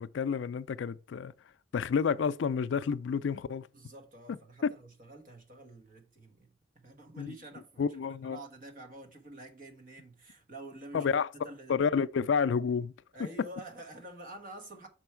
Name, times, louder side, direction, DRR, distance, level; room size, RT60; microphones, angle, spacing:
voice 1, 0.0-1.3 1.7-3.7 7.2-7.3 7.8-8.4 10.9-11.3 11.7-12.9, left 6 dB, 65° left, 0.3 m, -30 dB
voice 2, 3.7-11.8 13.1-14.9, right 1 dB, 45° right, 1.1 m, -48 dB
6.1 x 4.5 x 4.5 m
head